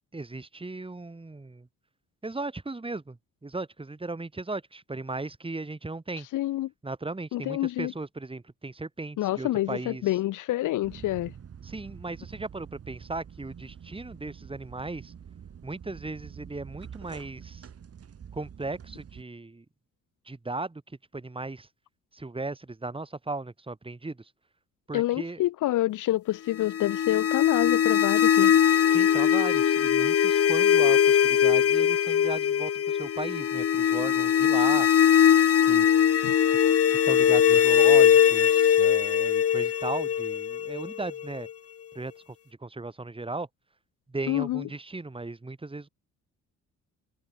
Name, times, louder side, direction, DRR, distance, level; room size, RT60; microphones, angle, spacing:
voice 1, 0.1-1.7 2.2-3.2 3.4-6.3 6.8-10.2 11.6-15.1 15.6-17.7 18.3-19.6 20.3-21.7 22.1-24.3 24.9-25.4 28.9-34.9 35.7-35.9 36.5-36.6 36.9-41.5 41.9-42.1 42.6-43.5 44.1-45.9, right 2 dB, 20° right, 7.2 m, -36 dB
voice 2, 6.3-6.7 7.3-7.9 9.2-11.3 24.9-28.5 36.2-36.3 44.3-44.7, left 15 dB, 85° left, 4.2 m, -27 dB
sound 1, 10.8-19.2, right 8 dB, 50° right, 6.8 m, -46 dB
sound 2, 26.6-41.5, left 9 dB, 50° left, 1.6 m, -21 dB
cardioid pair, 90°, 30 cm